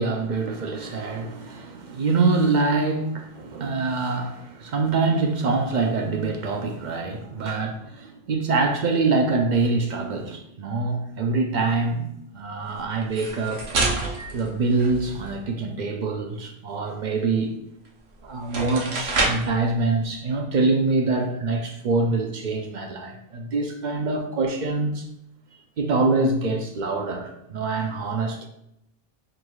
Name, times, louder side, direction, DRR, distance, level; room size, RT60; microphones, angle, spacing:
voice 1, 0.0-12.1 12.3-13.7 14.3-17.5 18.2-25.0 25.8-28.5, right 3 dB, 55° right, 0.6 m, -25 dB
sound 1, 13.0-15.4 17.9-18.0 18.4-19.6, right 2 dB, 90° right, 1.0 m, -27 dB
4.6 x 3.7 x 2.3 m
omnidirectional pair, 1.0 m